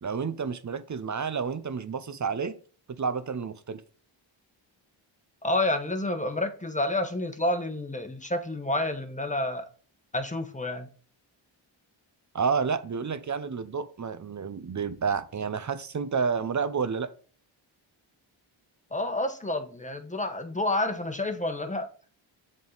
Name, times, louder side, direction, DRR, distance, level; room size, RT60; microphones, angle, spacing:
voice 1, 0.0-2.6 3.0-3.8 12.3-17.1, right 5 dB, 35° right, 0.6 m, -30 dB
voice 2, 5.4-9.7 10.1-10.9 18.9-21.9, left 1 dB, 15° left, 1.0 m, -29 dB
7.4 x 3.6 x 3.9 m
cardioid pair, 60°, 49 cm